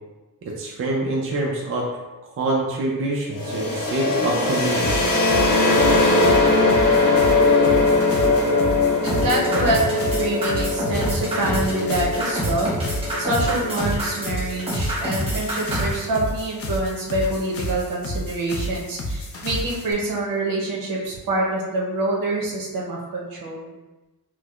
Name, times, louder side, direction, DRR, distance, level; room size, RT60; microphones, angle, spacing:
voice 1, 0.4-1.9 2.4-5.0, right 2 dB, 40° right, -2 dB, 0.4 m, -25 dB
sound 1, 3.3-15.0, left 2 dB, 65° left, 0.8 m, -21 dB
sound 2, 4.8-19.9, left 1 dB, 40° left, 0.4 m, -31 dB
voice 2, 9.0-12.7 13.2-23.7, right 2 dB, 70° right, -3 dB, 0.9 m, -26 dB
sound 3, 9.1-15.9, right 1 dB, 15° right, 0.8 m, -28 dB
4.5 x 2.0 x 2.3 m, 1.1 s
wide cardioid pair, 170°, 35 cm